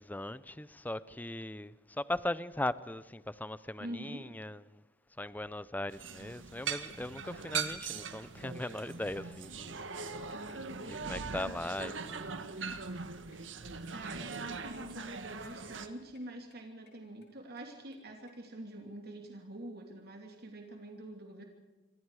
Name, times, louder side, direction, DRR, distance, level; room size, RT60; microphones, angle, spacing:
voice 1, 0.0-4.8 5.2-10.5 10.8-12.4, left 1 dB, 10° left, 0.6 m, -39 dB
voice 2, 3.8-4.2 13.9-21.4, right 1 dB, 55° right, 2.9 m, -45 dB
sound 1, 5.9-15.9, right 5 dB, 80° right, 1.8 m, -40 dB
sound 2, 7.0-7.1 7.3-7.7 8.0-8.1 8.4-8.5 8.7-9.5 9.7-10.9 11.2-12.7 13.0-13.1 13.3-13.4 13.7-13.8 14.0-14.1 14.4-14.8 15.1-15.5 15.8-16.2 16.5-18.3, left 6 dB, 65° left, 5.1 m, -66 dB
28.5 x 25.0 x 4.9 m
head